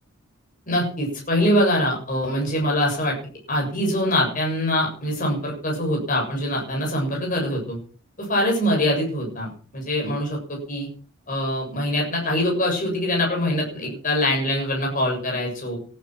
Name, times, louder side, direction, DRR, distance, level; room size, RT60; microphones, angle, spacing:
voice 1, 0.7-3.2 3.5-7.8 8.2-9.5 9.7-10.9 11.3-15.8, left 1 dB, 40° left, -1 dB, 7.2 m, -23 dB
19.5 x 11.5 x 6.0 m, 0.40 s
head